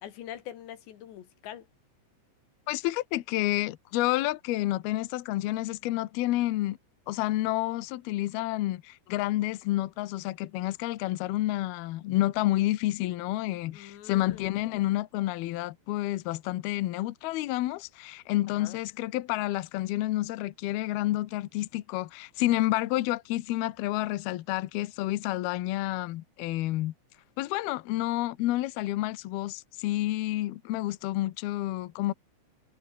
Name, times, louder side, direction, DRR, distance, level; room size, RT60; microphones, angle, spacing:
voice 1, 0.0-1.7 13.7-14.8 18.6-18.8, left 11 dB, 65° left, 4.1 m, -44 dB
voice 2, 2.7-6.8 7.1-26.9 27.4-32.1, left 16 dB, 80° left, 2.2 m, -29 dB
omnidirectional pair, 5.8 m